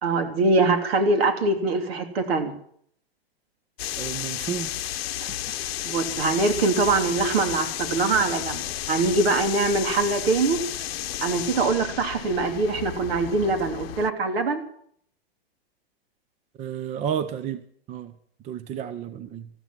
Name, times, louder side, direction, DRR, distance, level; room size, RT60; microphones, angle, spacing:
voice 1, 0.0-2.5 5.2-5.3 5.8-8.6 8.9-10.6 11.2-14.6, right 3 dB, 70° right, 3.2 m, -23 dB
sound 1, 3.8-14.1, left 13 dB, 70° left, 0.8 m, -32 dB
voice 2, 4.0-5.0 5.3-5.4 16.6-17.6 17.9-18.1 18.4-19.5, right 9 dB, 20° right, 0.7 m, -32 dB
14.5 x 13.0 x 7.6 m
hypercardioid pair, 135°, 31 cm